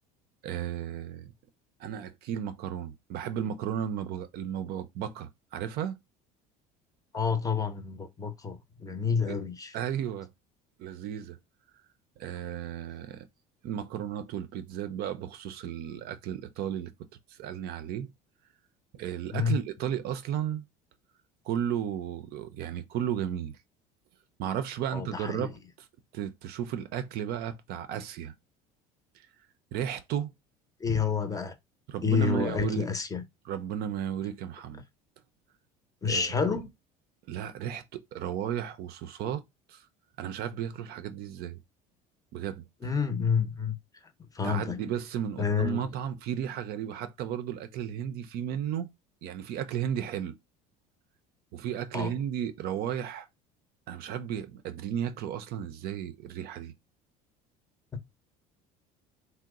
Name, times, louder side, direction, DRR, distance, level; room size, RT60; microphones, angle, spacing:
voice 1, 0.4-1.3 1.8-6.0 8.9-9.0 9.3-9.4 9.7-10.3 10.8-11.4 12.2-13.3 13.6-16.9 17.3-18.1 18.9-20.7 21.4-23.6 24.4-25.5 26.1-28.3 29.7-30.3 31.9-32.9 33.4-34.8 36.1-36.5 37.3-39.4 39.7-39.9 40.2-41.6 42.3-42.6 44.4-48.9 49.2-50.4 51.5-53.3 53.9-56.7, right 9 dB, 60° right, 0.5 m, -34 dB
voice 2, 7.1-9.8 19.3-19.6 24.9-25.5 30.8-31.5 32.0-33.2 36.0-36.7 42.8-43.8 44.3-44.8 45.4-45.8 51.9-52.2, left 6 dB, 20° left, 0.6 m, -29 dB
2.9 x 2.0 x 3.6 m
supercardioid pair, 100°, 18 cm